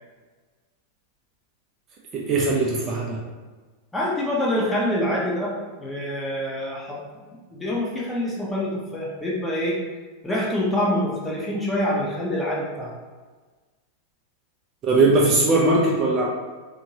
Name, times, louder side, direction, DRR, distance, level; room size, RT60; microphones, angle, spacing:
voice 1, 2.1-3.2 14.8-16.3, right 2 dB, 30° right, -2 dB, 0.6 m, -20 dB
voice 2, 3.9-7.0 7.5-9.8 10.2-12.9, left 1 dB, 10° left, -5 dB, 0.9 m, -26 dB
3.6 x 2.7 x 2.9 m, 1.4 s
figure-of-eight pair, 90°, 0 cm